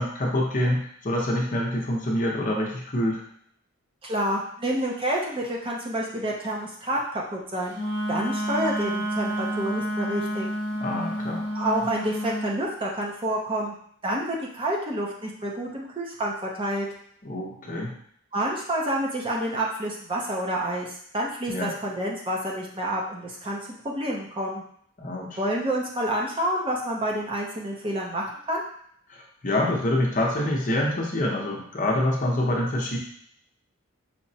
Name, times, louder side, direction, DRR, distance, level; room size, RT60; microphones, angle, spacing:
voice 1, 0.0-3.2 10.8-11.5 17.2-17.9 21.5-21.7 25.0-25.4 29.1-33.0, left 1 dB, 40° left, -2 dB, 0.7 m, -26 dB
voice 2, 4.0-7.7 8.1-10.5 11.5-13.7 14.0-16.9 18.3-23.6 23.8-24.6 25.4-28.6, right 1 dB, 25° right, -3 dB, 0.5 m, -28 dB
Wind instrument woodwind instrument, 7.7-12.5, equal, 55° right, 1.0 m, -29 dB
5.6 x 2.1 x 2.7 m, 0.65 s
head